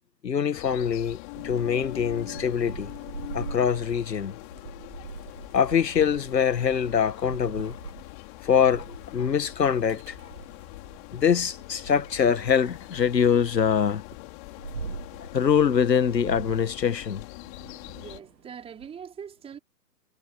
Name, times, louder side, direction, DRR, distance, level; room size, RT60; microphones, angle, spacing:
voice 1, 0.2-1.2 1.4-2.9 3.3-4.4 5.5-7.8 8.4-10.3 11.1-14.0 14.9-15.0 15.3-17.2, left 7 dB, 80° left, 1.9 m, -24 dB
sound 1, 0.5-18.2, left 29 dB, 30° left, 5.1 m, -43 dB
Thunder / Rain, 1.3-11.0 11.5-13.5 14.1-18.9, right 5 dB, 90° right, 2.1 m, -42 dB
voice 2, 17.9-19.6, right 7 dB, 10° right, 4.5 m, -42 dB
hypercardioid pair, 140°, 49 cm